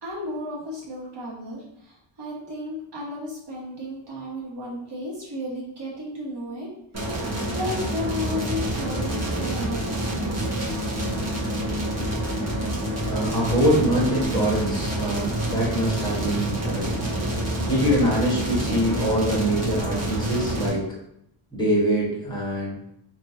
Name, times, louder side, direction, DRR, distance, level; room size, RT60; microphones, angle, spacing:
voice 1, 0.0-6.7 7.5-9.9, left 1 dB, 55° right, -5 dB, 1.3 m, -33 dB
sound 1, 6.9-20.7, right 1 dB, 30° right, 1.1 m, -27 dB
voice 2, 13.1-16.9 17.7-20.8 21.5-22.8, equal, 10° left, -5 dB, 1.2 m, -24 dB
3.0 x 2.6 x 2.7 m, 0.75 s
wide cardioid pair, 115°, 49 cm